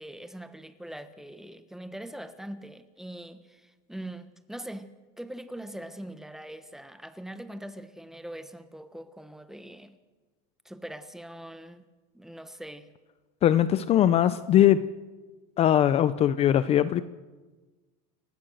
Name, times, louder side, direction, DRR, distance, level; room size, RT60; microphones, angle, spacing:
voice 1, 0.0-10.0 10.6-11.8 12.1-12.9, right 1 dB, ahead, 1.2 m, -42 dB
voice 2, 13.4-14.9 15.6-17.0, left 11 dB, 35° left, 0.6 m, -21 dB
29.0 x 15.5 x 6.5 m
cardioid pair, 150°, 19 cm